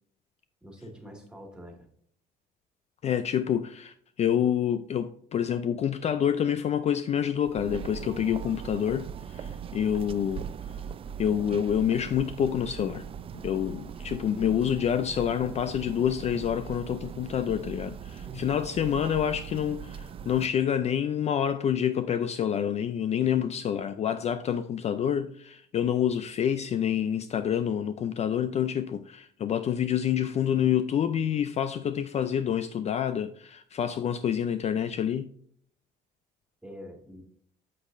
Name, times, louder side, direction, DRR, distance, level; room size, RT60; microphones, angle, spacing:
voice 1, 0.6-1.9 18.2-18.6 36.6-37.2, equal, 5° right, 2.0 m, -45 dB
voice 2, 3.0-10.4 11.2-13.0 13.3-35.3, left 9 dB, 40° left, 0.4 m, -27 dB
sound 1, 7.4-20.5, right 8 dB, 35° right, 0.4 m, -40 dB
8.3 x 6.6 x 2.5 m
cardioid pair, 110°, 17 cm